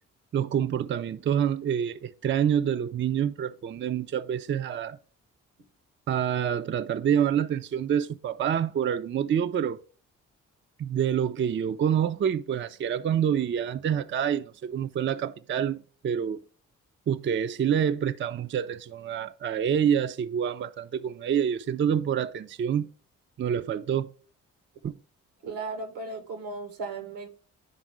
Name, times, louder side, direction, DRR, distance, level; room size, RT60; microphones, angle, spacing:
voice 1, 0.3-5.0 6.1-9.8 10.8-16.4 17.1-22.9 23.4-24.1 24.8-24.9, right 8 dB, 35° right, 0.4 m, -27 dB
voice 2, 25.4-27.3, right 3 dB, 80° right, 1.2 m, -36 dB
10.5 x 3.5 x 4.8 m
hypercardioid pair, 45°, 35 cm